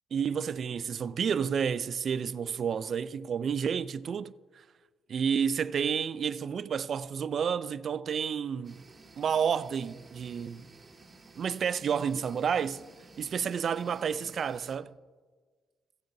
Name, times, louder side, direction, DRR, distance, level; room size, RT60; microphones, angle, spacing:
voice 1, 0.1-4.3 5.1-8.8 9.2-10.6 11.4-12.8 13.2-14.9, right 7 dB, 55° right, 0.4 m, -30 dB
sound 1, 8.6-14.8, right 3 dB, 30° right, 1.9 m, -54 dB
19.0 x 7.9 x 2.7 m
cardioid pair, 90°, 0 cm